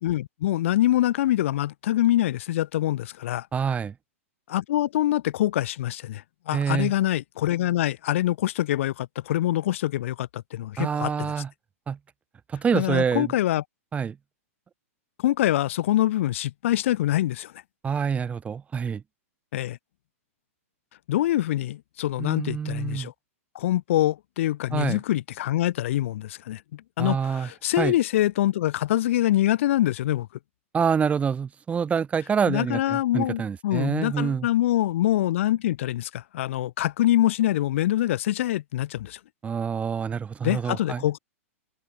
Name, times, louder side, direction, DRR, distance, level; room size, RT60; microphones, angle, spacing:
voice 1, 0.0-3.5 4.5-11.3 12.7-13.6 15.2-17.5 19.5-19.8 21.1-23.1 23.5-30.3 32.5-39.2 40.4-41.2, left 13 dB, 60° left, 1.7 m, -25 dB
voice 2, 3.5-3.9 6.5-6.9 10.8-11.5 11.9-12.0 12.5-13.3 13.9-14.2 17.8-19.0 22.2-23.1 24.7-25.0 27.0-27.5 27.8-27.9 30.7-34.5 39.4-41.0, right 6 dB, 15° right, 2.0 m, -26 dB
hypercardioid pair, 115°, 8 cm